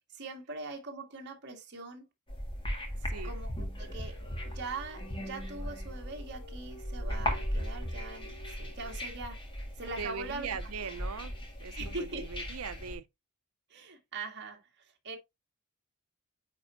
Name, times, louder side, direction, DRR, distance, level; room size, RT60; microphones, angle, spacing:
voice 1, 0.1-2.1 3.2-3.5 3.8-4.2 4.5-9.4 9.8-10.6 11.8-12.3 13.7-15.2, right 3 dB, 55° right, 2.0 m, -42 dB
sound 1, 2.3-13.0, equal, 25° left, 2.0 m, -38 dB
voice 2, 3.0-3.3 10.0-11.3 11.6-13.0, right 6 dB, 80° right, 0.7 m, -40 dB
sound 2, 3.8-9.5, equal, 65° left, 1.4 m, -54 dB
9.4 x 4.3 x 2.7 m
head